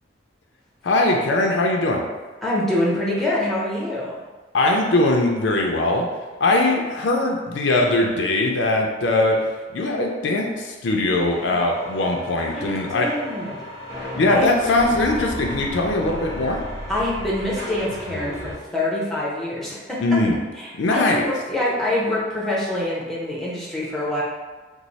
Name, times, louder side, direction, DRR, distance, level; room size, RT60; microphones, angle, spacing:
voice 1, 0.8-2.0 4.5-6.1 6.4-13.1 14.1-16.6 20.0-20.4 20.8-21.2, left 2 dB, 75° left, 1 dB, 0.5 m, -21 dB
voice 2, 2.4-4.2 12.5-13.7 14.3-14.5 16.9-20.0 20.6-24.2, left 1 dB, ahead, -6 dB, 0.6 m, -25 dB
sound 1, 11.3-18.5, equal, 15° right, 1.0 m, -35 dB
3.0 x 2.0 x 3.9 m, 1.3 s
head